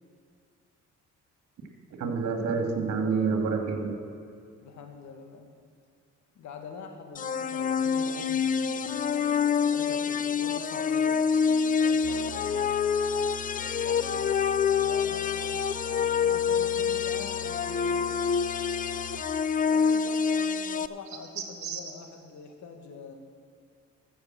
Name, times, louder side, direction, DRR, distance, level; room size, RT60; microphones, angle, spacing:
voice 1, 2.0-4.0 21.6-21.8, right 5 dB, 65° right, 4 dB, 2.2 m, -28 dB
voice 2, 4.6-5.5 6.3-12.8 13.6-14.4 14.7-18.1 19.7-23.1, left 5 dB, 70° left, 5 dB, 1.7 m, -45 dB
sound 1, 7.1-20.9, left 6 dB, 30° left, 0.4 m, -27 dB
sound 2, 12.0-19.2, left 7 dB, 50° left, 1.4 m, -42 dB
13.5 x 6.9 x 7.5 m, 2.4 s
cardioid pair, 90°, 30 cm